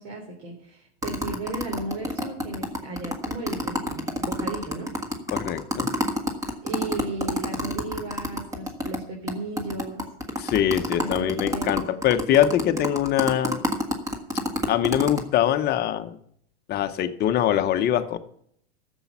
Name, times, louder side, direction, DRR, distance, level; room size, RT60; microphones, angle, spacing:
voice 1, 0.0-4.9 6.6-10.0 11.0-12.0, right 2 dB, 55° right, 0 dB, 3.6 m, -35 dB
sound 1, 1.0-9.0 9.3-9.4 9.6-15.2, left 1 dB, 10° right, 1.6 m, -27 dB
voice 2, 5.3-5.9 10.4-13.6 14.7-16.2 16.7-18.2, left 11 dB, 30° left, 9 dB, 0.9 m, -23 dB
13.0 x 7.2 x 7.2 m, 0.67 s
supercardioid pair, 135°, 33 cm